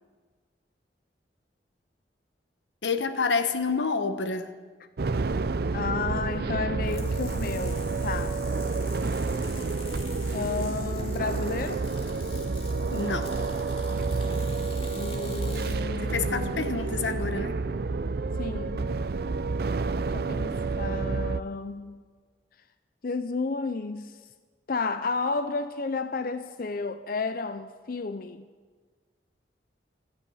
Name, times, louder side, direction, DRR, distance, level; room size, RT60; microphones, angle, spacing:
voice 1, 2.8-4.5 12.9-13.3 16.0-17.6, left 4 dB, 85° left, 1.0 m, -28 dB
sound 1, 5.0-21.4, right 3 dB, 55° right, 0.5 m, -29 dB
voice 2, 5.7-8.4 10.3-11.8 14.9-16.7 18.4-19.0 20.1-22.0 23.0-24.2 24.7-28.5, left 4 dB, 55° left, 0.5 m, -32 dB
sound 2, 6.8-15.8, left 3 dB, 35° left, 2.2 m, -45 dB
17.5 x 13.5 x 5.6 m
head